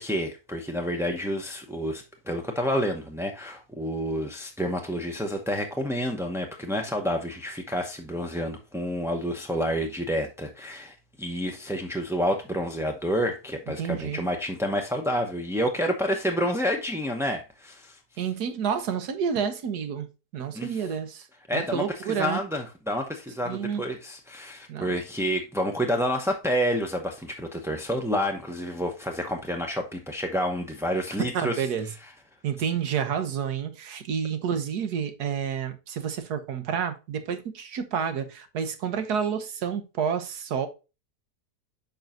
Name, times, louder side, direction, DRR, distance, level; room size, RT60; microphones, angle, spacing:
voice 1, 0.0-18.0 20.5-20.7 21.5-31.7, equal, 5° right, 0.4 m, -29 dB
voice 2, 13.8-14.3 18.2-20.1 20.3-21.3 21.5-22.4 23.5-23.8 24.7-24.9 31.3-31.9 32.4-40.7, right 7 dB, 85° right, 1.6 m, -29 dB
8.9 x 5.4 x 2.5 m
omnidirectional pair, 1.6 m